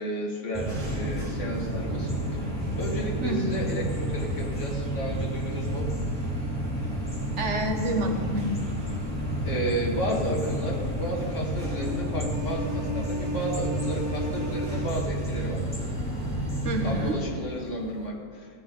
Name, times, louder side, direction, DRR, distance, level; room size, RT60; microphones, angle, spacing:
voice 1, 0.0-6.0 9.4-15.7 16.8-18.5, equal, 55° left, -1 dB, 2.3 m, -33 dB
sound 1, 0.5-17.1, right 1 dB, 5° left, 2.4 m, -31 dB
sound 2, 0.7-18.1, left 1 dB, 85° right, 2.9 m, -38 dB
voice 2, 3.2-3.6 7.4-8.5 16.6-17.2, right 1 dB, 60° right, 2 dB, 1.6 m, -28 dB
15.5 x 5.7 x 9.2 m, 2.2 s
omnidirectional pair, 1.5 m